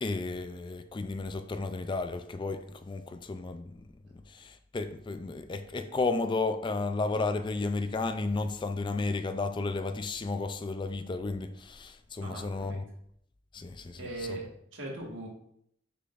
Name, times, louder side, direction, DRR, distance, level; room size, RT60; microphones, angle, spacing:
voice 1, 0.0-3.8 4.3-12.8 13.5-14.0 14.3-14.4, left 3 dB, 25° left, 0.3 m, -33 dB
voice 2, 12.2-12.8 13.9-15.3, right 2 dB, 75° right, 1.7 m, -40 dB
6.6 x 5.8 x 2.5 m
head